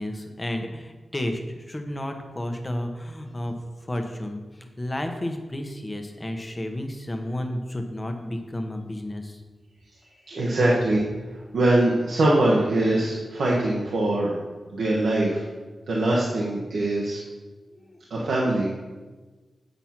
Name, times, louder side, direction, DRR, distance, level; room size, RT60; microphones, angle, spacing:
voice 1, 0.0-3.5 3.8-9.4 17.7-18.1, left 1 dB, 25° left, 5 dB, 1.0 m, -32 dB
voice 2, 10.3-11.0 11.5-14.4 14.7-15.5 15.9-17.2 18.1-18.7, right 1 dB, 85° right, -4 dB, 1.1 m, -22 dB
7.9 x 4.4 x 5.9 m, 1.3 s
cardioid pair, 65°, 0 cm